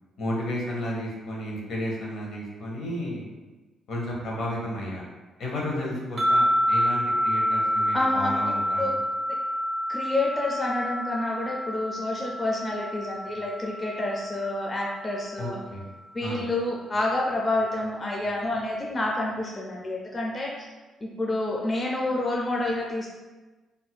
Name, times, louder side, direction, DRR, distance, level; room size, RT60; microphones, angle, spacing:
voice 1, 0.2-3.3 3.9-5.0 5.4-9.0 15.4-15.9 16.2-16.5, left 1 dB, 65° left, -3 dB, 0.9 m, -32 dB
sound 1, 6.2-15.4, equal, 35° right, 0.6 m, -28 dB
voice 2, 7.9-8.9 9.9-15.6 16.1-20.7 21.0-23.1, left 2 dB, 30° left, -2 dB, 0.4 m, -28 dB
4.1 x 2.6 x 2.2 m, 1.2 s
cardioid pair, 90°, 0 cm